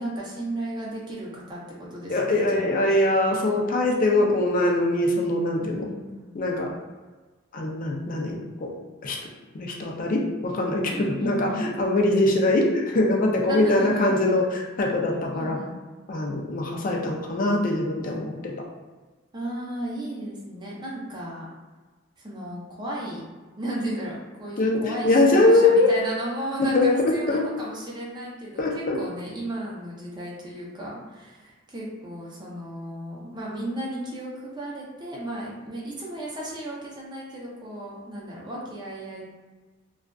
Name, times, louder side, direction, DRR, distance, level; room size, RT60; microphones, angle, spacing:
voice 1, 0.0-2.8 5.6-6.4 10.9-11.7 13.5-14.2 15.3-15.8 19.3-21.5 22.2-23.2 23.6-39.2, right 1 dB, 25° right, -5 dB, 0.6 m, -34 dB
voice 2, 2.1-5.9 6.3-6.7 7.5-8.7 9.0-9.2 9.5-15.6 16.1-18.5 24.6-25.9 26.6-27.4 28.6-29.0, left 2 dB, 45° left, 0 dB, 0.4 m, -22 dB
2.4 x 2.3 x 2.2 m, 1.3 s
head